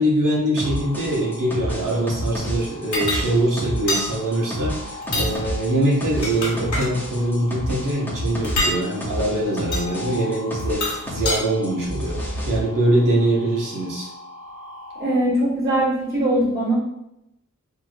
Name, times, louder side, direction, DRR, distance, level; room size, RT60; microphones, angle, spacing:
voice 1, 0.0-14.1, right 1 dB, 85° right, -4 dB, 1.2 m, -23 dB
sound 1, 0.6-15.2, left 2 dB, 85° left, 0.8 m, -41 dB
sound 2, 0.6-11.4 11.6-12.6, equal, 5° left, 0.6 m, -30 dB
sound 3, 2.9-3.2 3.9-4.1 5.0-5.3 6.0-6.9 8.4-8.8 9.7-9.9 10.6-11.4, left 2 dB, 65° left, 1.2 m, -25 dB
voice 2, 15.0-16.7, right 1 dB, 30° right, -8 dB, 1.4 m, -21 dB
4.7 x 3.0 x 2.4 m, 0.83 s
wide cardioid pair, 145°, 31 cm